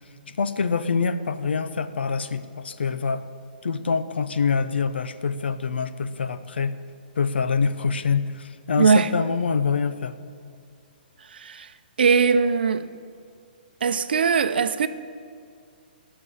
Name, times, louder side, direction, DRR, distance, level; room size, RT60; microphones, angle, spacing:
voice 1, 0.4-3.2 3.6-6.7 7.2-10.2, left 5 dB, 90° left, 0.8 m, -25 dB
voice 2, 8.8-9.1 11.3-11.7 12.0-12.8 13.8-14.9, right 5 dB, 70° right, 0.7 m, -20 dB
12.0 x 6.7 x 8.8 m
hypercardioid pair, 175°, 6 cm